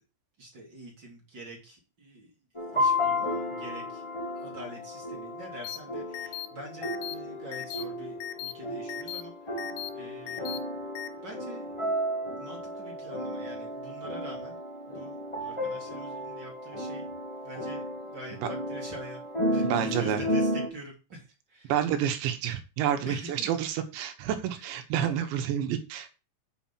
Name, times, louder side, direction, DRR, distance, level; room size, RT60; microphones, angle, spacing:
voice 1, 0.4-2.3 2.7-4.0 4.3-9.7 9.9-10.6 11.2-11.7 12.4-14.6 14.9-17.0 17.4-17.9 18.1-21.2 21.5-21.7 23.0-23.5 25.0-25.2, right 1 dB, 30° right, -1 dB, 2.2 m, -45 dB
sound 1, 2.5-20.7, left 1 dB, 20° left, 0.7 m, -33 dB
sound 2, 5.6-5.8 6.1-6.5 6.8-7.2 7.5-7.8 8.2-8.5 8.9-9.2 9.6-9.9 10.3-10.6 11.0-11.1, left 12 dB, 90° left, 2.2 m, -37 dB
voice 2, 19.6-20.2 21.7-26.1, right 10 dB, 75° right, 7 dB, 3.2 m, -29 dB
8.4 x 5.8 x 7.4 m, 0.31 s
omnidirectional pair, 5.6 m